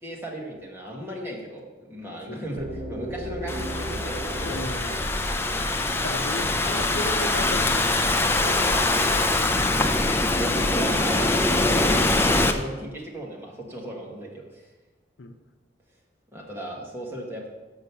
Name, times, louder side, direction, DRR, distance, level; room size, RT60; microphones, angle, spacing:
voice 1, 0.0-4.8 5.4-5.6 8.0-9.8 10.3-14.7 16.3-17.5, equal, 15° right, -2 dB, 1.5 m, -36 dB
sound 1, 2.6-6.5, right 1 dB, 50° right, 2.0 m, -36 dB
Thunderstorm / Rain, 3.5-12.5, left 2 dB, 15° left, 0.5 m, -23 dB
voice 2, 4.4-5.2 6.0-7.9 15.2-15.4, left 2 dB, 85° left, 7 dB, 0.7 m, -34 dB
6.3 x 6.0 x 6.8 m, 1.2 s
head